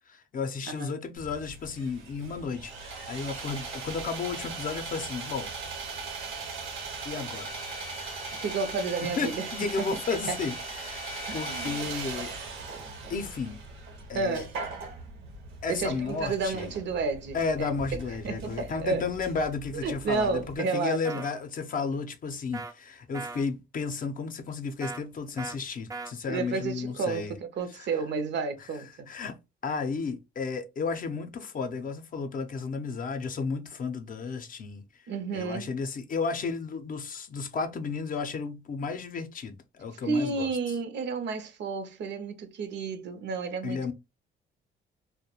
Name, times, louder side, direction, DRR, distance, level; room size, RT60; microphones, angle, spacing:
voice 1, 0.1-5.5 7.0-7.6 9.0-12.3 13.1-13.6 14.1-14.5 15.6-16.7 17.3-27.3 27.8-27.9 29.1-29.4 29.6-34.8 35.3-40.5 43.6-43.9, left 4 dB, 45° left, 0.5 m, -33 dB
Sawing, 1.2-20.6, right 3 dB, 85° right, 0.9 m, -39 dB
voice 2, 8.3-9.5 9.8-10.4 11.3-11.8 14.1-14.5 15.7-17.7 18.2-19.0 19.8-21.0 26.3-29.1 35.1-35.8 40.0-43.9, right 4 dB, 65° right, 0.6 m, -31 dB
sound 1, 21.0-21.3 22.5-22.7 23.1-23.4 24.8-25.0 25.4-25.6 25.9-26.1, right 3 dB, 20° right, 0.3 m, -38 dB
2.2 x 2.1 x 2.8 m
cardioid pair, 90°, 20 cm